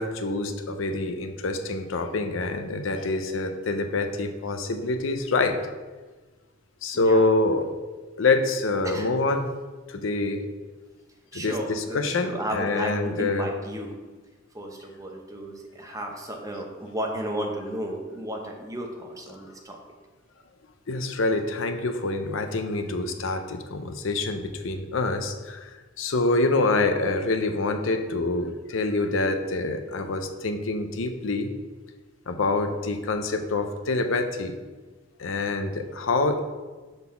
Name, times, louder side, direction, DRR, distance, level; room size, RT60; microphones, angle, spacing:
voice 1, 0.0-5.6 6.8-7.7 8.2-9.5 9.9-10.5 11.3-13.5 20.9-25.7 26.0-31.5 32.3-34.5 35.2-36.4, left 3 dB, 80° left, 7 dB, 0.6 m, -26 dB
voice 2, 6.9-7.3 8.8-9.1 11.3-13.9 14.5-19.8, right 1 dB, 15° right, 1 dB, 0.9 m, -33 dB
5.6 x 4.0 x 5.7 m, 1.3 s
head